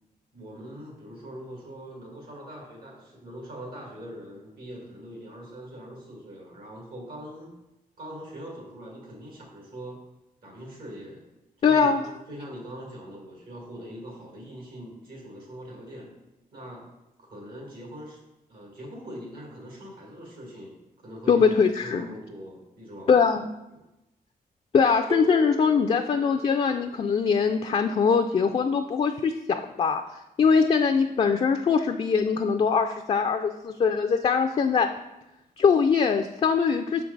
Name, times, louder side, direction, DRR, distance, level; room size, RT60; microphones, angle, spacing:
voice 1, 0.3-7.6 8.0-10.0 10.4-11.2 11.6-16.1 16.5-16.8 17.3-18.2 18.5-20.7 21.0-21.6 21.8-23.2 23.7-23.8, equal, 80° right, -2 dB, 2.1 m, -42 dB
voice 2, 11.6-12.0 21.3-22.0 23.1-23.5 24.7-34.9 35.6-37.0, left 5 dB, 40° left, 7 dB, 0.3 m, -22 dB
sound 1, 25.1-27.1, right 2 dB, 40° right, 0.5 m, -38 dB
6.0 x 4.6 x 3.9 m, 0.95 s
cardioid pair, 70°, 15 cm